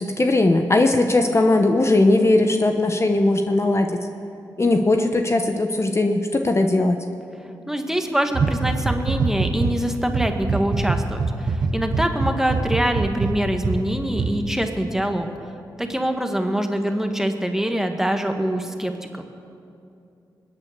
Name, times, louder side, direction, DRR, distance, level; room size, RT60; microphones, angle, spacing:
voice 1, 0.0-4.1 4.6-7.0, left 2 dB, 35° left, 5 dB, 1.0 m, -19 dB
voice 2, 7.7-15.3 15.8-19.2, right 1 dB, 5° right, 5 dB, 1.7 m, -24 dB
sound 1, 8.3-9.7 10.1-13.8 14.1-14.3, right 4 dB, 55° right, 1.2 m, -23 dB
21.5 x 8.8 x 6.8 m, 2.6 s
supercardioid pair, 45°, 8 cm